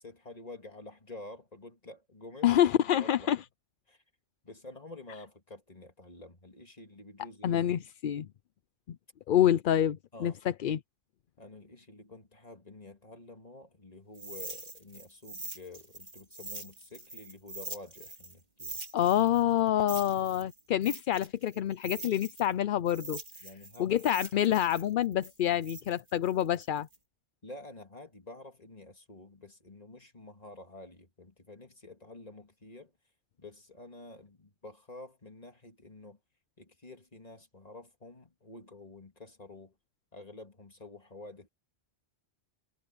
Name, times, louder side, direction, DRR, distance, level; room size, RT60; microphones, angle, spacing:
voice 1, 0.0-2.5 2.8-3.4 3.9-4.0 4.4-7.8 10.1-10.4 11.4-18.8 23.4-24.0 25.5-25.6 27.4-32.9 33.4-36.2 36.6-39.7 40.1-41.5, left 2 dB, 35° left, 2.6 m, -49 dB
voice 2, 2.4-3.4 7.4-8.3 8.9-9.0 9.3-10.8 18.9-23.2 23.8-26.9, left 11 dB, 60° left, 0.6 m, -27 dB
sound 1, 14.1-18.3 18.6-22.5 22.9-27.0, right 2 dB, 40° right, 2.8 m, -44 dB
omnidirectional pair, 1.1 m